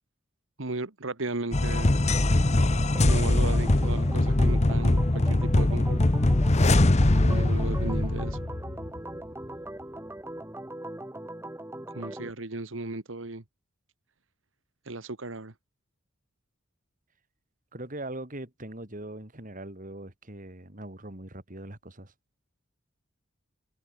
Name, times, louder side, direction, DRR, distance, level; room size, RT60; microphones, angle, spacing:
voice 1, 0.6-1.9 2.9-6.0 7.2-8.4 11.9-13.4 14.9-15.5, right 2 dB, 75° right, 1.6 m, -35 dB
sound 1, 1.5-9.0, left 2 dB, 35° left, 1.0 m, -22 dB
Organ, 2.9-12.3, right 1 dB, 10° right, 2.0 m, -40 dB
voice 2, 17.7-22.1, right 1 dB, 40° right, 3.8 m, -41 dB
head